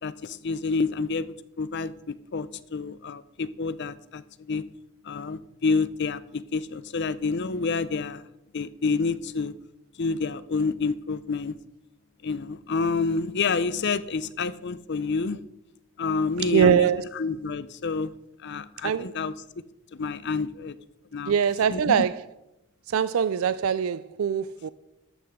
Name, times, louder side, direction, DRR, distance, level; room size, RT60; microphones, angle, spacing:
voice 1, 0.0-4.6 5.0-8.2 8.5-9.5 10.0-11.6 12.2-15.4 16.0-18.1 18.4-19.3 19.9-20.8 21.1-21.3 21.7-22.1, left 4 dB, 55° left, 0.6 m, -28 dB
voice 2, 16.4-17.1 18.8-19.1 21.3-22.2 22.9-24.7, right 7 dB, 80° right, 0.4 m, -23 dB
13.5 x 12.0 x 3.7 m
head